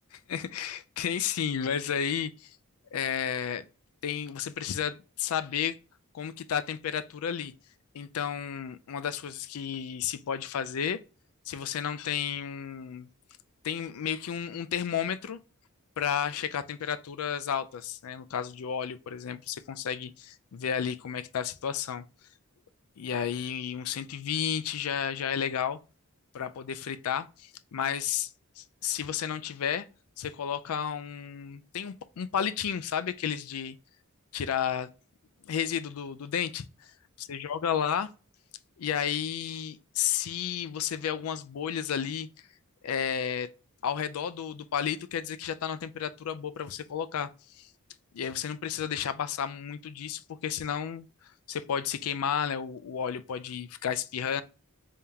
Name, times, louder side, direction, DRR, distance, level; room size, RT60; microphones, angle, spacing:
voice 1, 0.3-2.5 2.9-3.6 4.0-5.8 6.1-7.5 7.9-11.0 11.5-13.1 13.6-15.4 16.0-22.0 23.0-25.8 26.3-28.3 28.6-29.9 30.2-33.8 34.3-34.9 35.5-36.7 37.2-38.1 38.8-42.3 42.8-43.5 43.8-47.3 47.6-47.7 48.1-51.1 51.5-54.4, left 8 dB, 80° left, 0.4 m, -32 dB
3.6 x 3.4 x 2.7 m
head